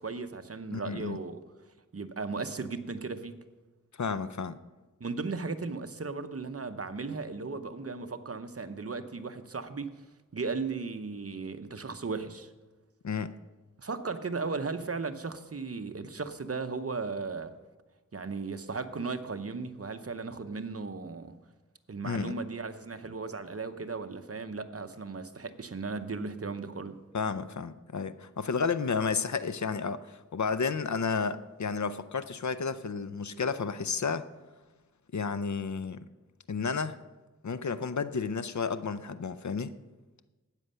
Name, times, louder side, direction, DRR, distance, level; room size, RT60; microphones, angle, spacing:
voice 1, 0.0-1.4 1.9-3.4 5.0-9.9 10.3-12.5 13.8-17.5 18.1-21.4 21.9-27.0, right 4 dB, 45° right, 9 dB, 0.8 m, -36 dB
voice 2, 0.7-1.2 4.0-4.6 13.0-13.3 22.0-22.3 27.1-34.3 35.1-36.0 36.5-37.0 37.4-39.7, left 5 dB, 60° left, 13 dB, 0.6 m, -32 dB
13.0 x 9.0 x 5.6 m, 1.2 s
wide cardioid pair, 70°, 32 cm